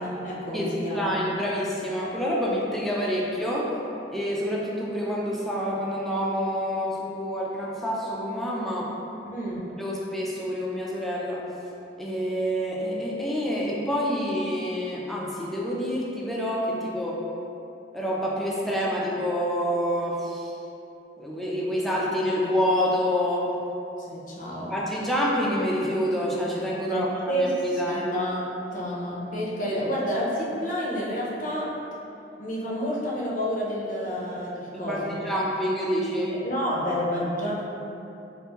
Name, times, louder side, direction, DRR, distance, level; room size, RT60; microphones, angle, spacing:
voice 1, 0.0-1.1 9.2-9.7 24.1-24.7 26.8-28.4 28.7-31.7 32.4-35.2 36.3-37.6, equal, 50° left, -4 dB, 0.6 m, -29 dB
voice 2, 0.5-3.7 4.1-8.9 9.8-11.4 12.0-17.2 17.9-20.5 21.2-23.5 24.7-28.0 34.7-36.3, equal, ahead, -5 dB, 0.4 m, -27 dB
3.4 x 2.5 x 2.8 m, 2.8 s
head